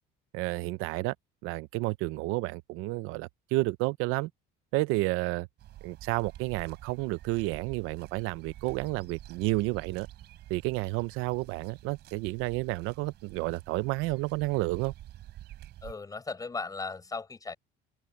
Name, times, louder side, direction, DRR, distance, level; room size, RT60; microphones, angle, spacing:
voice 1, 0.3-1.1 1.4-4.3 4.7-5.5 5.8-10.1 10.5-14.9, right 21 dB, 85° right, 0.7 m, -31 dB
sound 1, 5.6-15.9, right 13 dB, 55° right, 3.3 m, -48 dB
voice 2, 15.8-17.5, left 4 dB, 15° left, 6.5 m, -37 dB
open air
cardioid pair, 150°, 21 cm